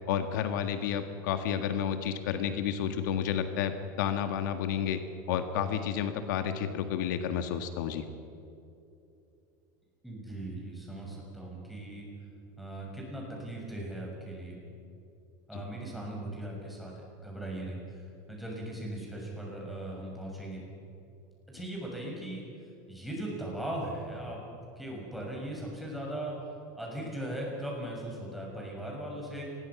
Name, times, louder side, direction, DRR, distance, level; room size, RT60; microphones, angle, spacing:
voice 1, 0.1-5.0 5.3-8.0, left 8 dB, 85° left, 8 dB, 1.8 m, -31 dB
voice 2, 10.0-12.1 12.6-14.6 15.5-20.6 21.5-22.4 22.9-24.4 24.8-26.3 26.7-29.4, right 1 dB, ahead, -3 dB, 6.3 m, -39 dB
27.5 x 21.0 x 6.0 m, 2.7 s
supercardioid pair, 160°, 10 cm